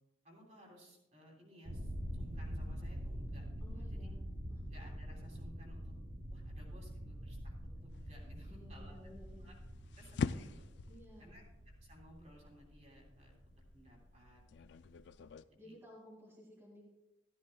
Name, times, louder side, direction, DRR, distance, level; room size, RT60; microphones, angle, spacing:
voice 1, 0.2-4.1 4.7-5.9 6.3-9.1 9.4-9.5 10.0-10.7 11.2-11.4 11.8-13.3 13.7-14.4 14.8-14.9 15.5-15.7, equal, 35° right, -2 dB, 3.2 m, -59 dB
sound 1, 1.6-15.3, equal, 90° right, 3.2 m, -45 dB
voice 2, 3.6-4.2 4.5-4.7 8.5-9.5 10.9-11.4 15.6-16.8, equal, 15° right, -6 dB, 2.4 m, -56 dB
sound 2, 7.9-15.4, left 5 dB, 70° left, 0.4 m, -45 dB
13.5 x 13.5 x 2.3 m, 0.94 s
head